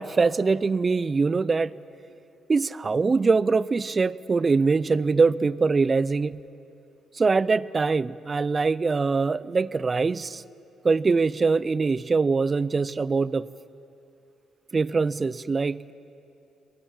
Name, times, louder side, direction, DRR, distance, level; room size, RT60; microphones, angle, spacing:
voice 1, 0.0-1.7 2.5-6.4 7.2-10.4 10.8-13.5 14.7-15.9, right 4 dB, 30° right, 19 dB, 0.5 m, -23 dB
22.0 x 18.0 x 8.8 m, 2.8 s
cardioid pair, 90°, 0 cm